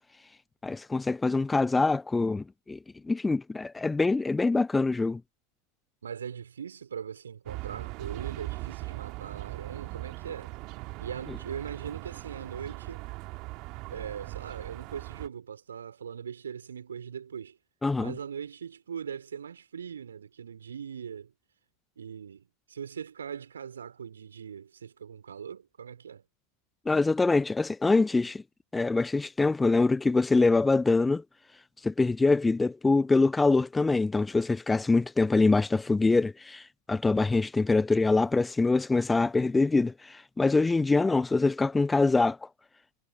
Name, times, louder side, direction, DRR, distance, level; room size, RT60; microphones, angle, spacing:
voice 1, 0.6-2.8 3.0-5.2 17.8-18.1 26.9-28.4 28.7-31.2 31.8-42.4, left 3 dB, 10° left, 0.3 m, -24 dB
voice 2, 6.0-10.5 11.0-13.1 13.9-17.6 18.0-21.3 22.0-26.2, right 7 dB, 70° right, 3.6 m, -40 dB
sound 1, 7.5-15.3, right 24 dB, 40° right, 2.7 m, -39 dB
figure-of-eight pair, 90°, 0 cm